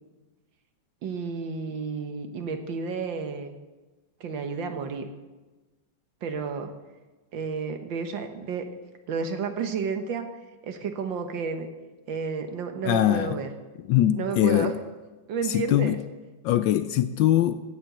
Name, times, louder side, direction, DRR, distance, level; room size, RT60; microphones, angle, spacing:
voice 1, 1.0-3.6 4.2-5.1 6.2-6.7 7.3-8.7 9.1-10.3 10.6-11.7 12.1-13.5 14.1-14.7 15.3-16.0, right 5 dB, 65° right, 7 dB, 1.8 m, -31 dB
voice 2, 12.8-13.3 13.9-14.7 15.5-16.0 16.4-17.6, left 12 dB, 75° left, 12 dB, 1.1 m, -22 dB
15.5 x 7.5 x 6.9 m, 1.2 s
omnidirectional pair, 2.2 m